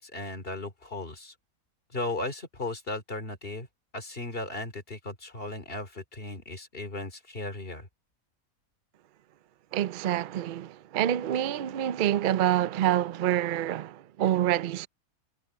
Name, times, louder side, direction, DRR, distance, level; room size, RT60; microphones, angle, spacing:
voice 1, 0.0-1.3 1.9-3.7 3.9-7.9, left 2 dB, 40° left, 3.1 m, -36 dB
voice 2, 9.7-14.9, right 11 dB, 70° right, 0.4 m, -27 dB
omnidirectional pair, 1.5 m